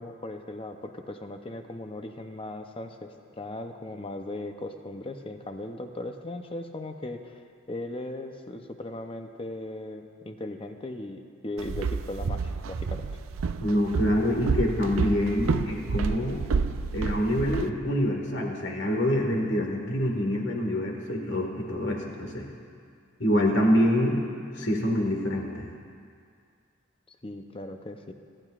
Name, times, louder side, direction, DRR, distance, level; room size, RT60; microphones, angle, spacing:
voice 1, 0.0-7.3 7.7-13.1 27.1-28.1, left 1 dB, 25° left, 6 dB, 0.7 m, -38 dB
Walk footsteps, 11.6-17.7, right 5 dB, 80° right, 0.5 m, -29 dB
voice 2, 13.6-16.4 16.9-22.5 23.2-24.3 24.5-25.7, equal, 60° left, 1 dB, 1.7 m, -26 dB
28.5 x 11.0 x 2.5 m, 2.2 s
head